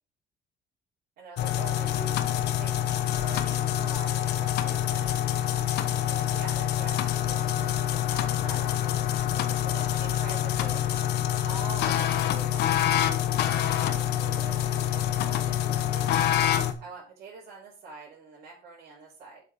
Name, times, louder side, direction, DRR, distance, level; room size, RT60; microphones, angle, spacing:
voice 1, 1.2-5.2 6.0-8.8 9.3-10.8 11.4-16.3 16.8-19.4, right 4 dB, 70° right, -6 dB, 3.7 m, -45 dB
sound 1, 1.4-16.7, left 11 dB, 75° left, 0.9 m, -26 dB
7.9 x 5.2 x 5.1 m, 0.36 s
cardioid pair, 110°, 17 cm